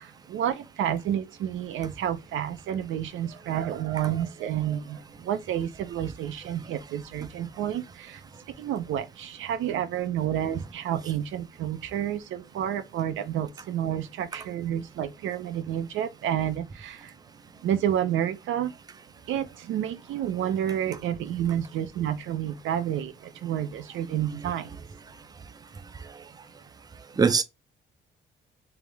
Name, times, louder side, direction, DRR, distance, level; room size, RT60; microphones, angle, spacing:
voice 1, 0.0-8.2 8.5-17.1 17.6-18.7 19.3-24.8, right 10 dB, 80° right, 0.7 m, -30 dB
voice 2, 24.1-24.8 27.2-27.4, right 5 dB, 20° right, 0.5 m, -25 dB
3.5 x 2.9 x 3.4 m
cardioid pair, 90°, 20 cm